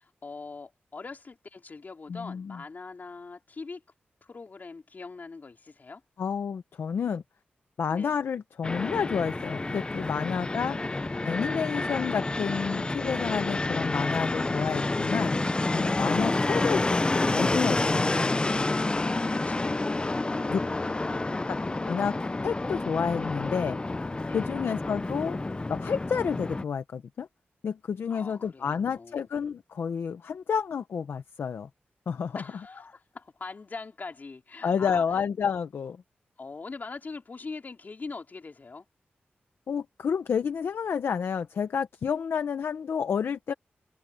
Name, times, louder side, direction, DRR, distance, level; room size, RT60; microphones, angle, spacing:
voice 1, 0.0-3.8 4.2-6.0 7.9-8.2 15.8-16.2 18.5-21.3 24.3-24.5 28.1-29.3 32.3-35.0 36.4-38.9, left 4 dB, 50° left, 3.7 m, -43 dB
voice 2, 2.1-2.6 6.2-7.2 7.8-11.0 11.2-15.4 15.7-18.4 20.5-20.6 21.5-21.6 21.9-22.2 22.4-23.8 24.3-25.4 25.7-27.3 27.6-31.7 32.1-32.4 34.6-36.0 39.7-43.5, left 6 dB, 85° left, 1.0 m, -30 dB
Fixed-wing aircraft airplane, 8.6-26.6, left 2 dB, 25° left, 0.6 m, -29 dB
wide cardioid pair, 80°, 4 cm